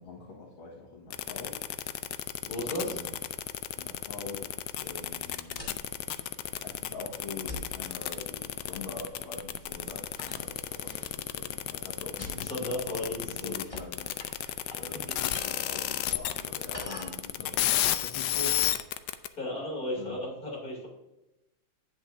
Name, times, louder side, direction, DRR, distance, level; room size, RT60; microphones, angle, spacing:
voice 1, 0.0-1.8 2.7-3.1 3.8-5.8 6.2-14.4 14.7-19.1 20.0-20.2, left 3 dB, 90° left, -4 dB, 2.3 m, -44 dB
sound 1, 1.1-19.3, left 13 dB, 75° left, 1.0 m, -32 dB
voice 2, 2.4-3.0 12.3-13.5 14.7-14.8 15.1-15.2 19.3-20.9, left 1 dB, 45° left, -3 dB, 3.9 m, -35 dB
sound 2, 5.3-17.3, left 1 dB, 15° left, 1.8 m, -48 dB
10.5 x 8.9 x 2.6 m, 0.94 s
omnidirectional pair, 2.2 m